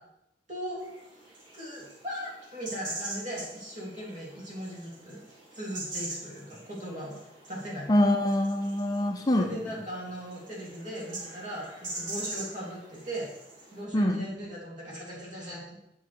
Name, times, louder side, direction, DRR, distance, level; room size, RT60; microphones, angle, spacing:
voice 1, 0.5-0.8 1.5-5.2 5.5-7.1 7.5-8.1 9.3-13.3 13.7-15.8, equal, 45° right, -5 dB, 3.1 m, -38 dB
sound 1, 0.8-13.8, right 2 dB, 85° right, 3.5 m, -43 dB
voice 2, 7.9-9.6 13.9-14.2, left 1 dB, 20° left, 4 dB, 0.5 m, -24 dB
8.2 x 6.2 x 4.6 m, 0.86 s
head